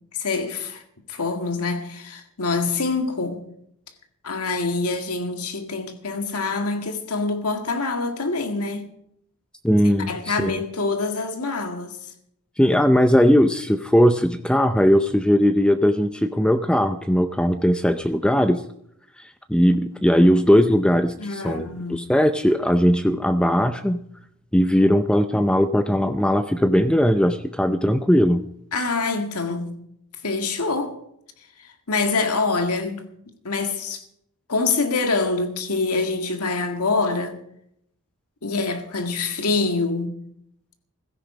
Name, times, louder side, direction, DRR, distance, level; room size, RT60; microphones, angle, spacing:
voice 1, 0.1-0.8 1.1-3.5 4.2-8.9 10.1-12.0 21.2-22.0 28.7-29.7 30.2-30.9 31.6-33.0 33.4-34.0 34.5-37.4 38.4-40.1, left 3 dB, 85° left, 1.9 m, -25 dB
voice 2, 9.6-10.6 12.6-18.6 19.2-24.0 24.5-28.4, equal, 5° left, 0.5 m, -19 dB
16.0 x 13.5 x 4.9 m
head